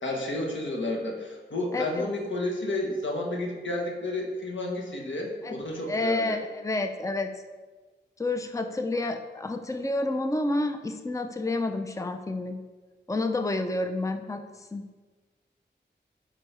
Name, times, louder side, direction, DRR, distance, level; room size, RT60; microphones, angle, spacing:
voice 1, 0.0-6.4, left 2 dB, 85° left, -1 dB, 1.3 m, -31 dB
voice 2, 1.7-2.0 5.4-5.5 5.9-7.3 8.2-12.6 13.1-14.4 14.7-14.8, left 2 dB, 15° left, 7 dB, 0.6 m, -29 dB
9.0 x 6.0 x 3.3 m, 1.3 s
cardioid pair, 50°, 19 cm